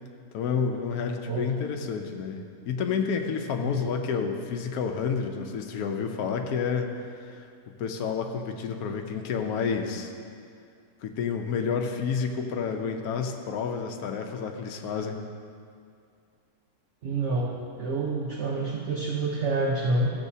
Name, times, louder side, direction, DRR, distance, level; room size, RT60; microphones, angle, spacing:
voice 1, 0.3-7.5 7.8-10.1 11.0-15.2, left 6 dB, 75° left, 3 dB, 1.2 m, -30 dB
voice 2, 17.0-20.1, right 2 dB, 55° right, -3 dB, 1.0 m, -27 dB
14.5 x 7.0 x 2.7 m, 2.3 s
omnidirectional pair, 1.7 m